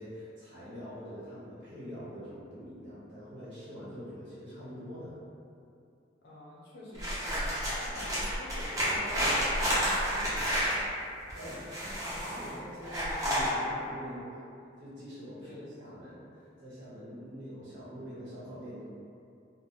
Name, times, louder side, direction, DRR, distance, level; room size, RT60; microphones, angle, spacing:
voice 1, 0.0-5.2 11.3-14.4 14.8-18.8, equal, 70° right, -10 dB, 1.0 m, -44 dB
voice 2, 6.2-10.8 15.4-15.6, equal, 55° left, -7 dB, 0.6 m, -46 dB
sound 1, 6.9-10.8 11.3-12.5 12.8-13.5, equal, 20° right, 0.6 m, -30 dB
2.2 x 2.2 x 2.7 m, 2.5 s
head